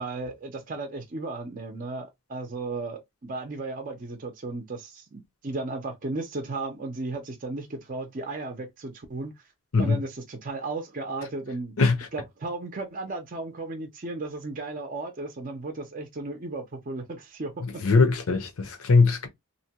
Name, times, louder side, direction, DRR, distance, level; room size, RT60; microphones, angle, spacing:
voice 1, 0.0-9.3 9.8-11.7 12.1-17.5, right 3 dB, 35° right, 0.5 m, -35 dB
voice 2, 11.8-12.1 17.6-19.3, left 4 dB, 70° left, 0.7 m, -21 dB
2.6 x 2.1 x 2.8 m
head